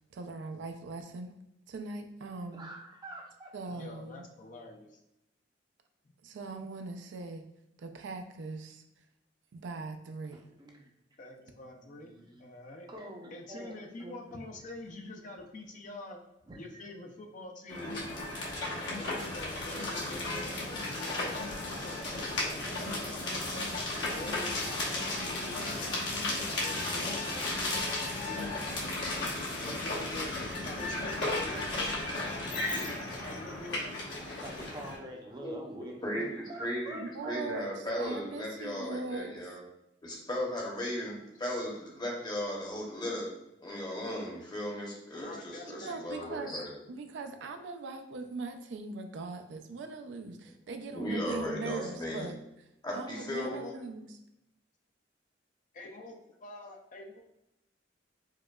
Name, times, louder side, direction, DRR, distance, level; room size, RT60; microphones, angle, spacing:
voice 1, 0.0-1.3 1.7-2.7 3.5-4.2 6.2-7.4 7.8-8.8 9.5-10.4 37.0-37.7 38.0-39.3 45.7-46.5 46.9-52.4 52.9-54.1, right 3 dB, 70° right, 7 dB, 0.4 m, -40 dB
voice 2, 2.5-3.5 10.3-10.9 11.6-12.5 12.9-14.4 16.5-16.6 34.4-36.0 36.5-37.3, right 1 dB, 25° right, 0 dB, 0.5 m, -46 dB
voice 3, 3.7-4.9 11.2-12.9 13.3-16.2 16.6-18.3 18.9-21.4 21.8-23.7 24.1-27.8 28.2-28.6 29.1-30.3 30.6-31.7 32.2-33.9 45.1-46.4 53.4-53.7 55.7-56.1 56.4-57.2, left 2 dB, 45° left, 3 dB, 0.4 m, -46 dB
sound 1, 17.7-35.0, left 2 dB, 80° left, 1.0 m, -34 dB
voice 4, 35.4-39.6 40.0-43.3 43.6-46.7 50.4-50.5 50.9-52.3 52.8-53.6, equal, 25° left, -2 dB, 0.8 m, -36 dB
4.7 x 2.2 x 2.2 m, 0.87 s
head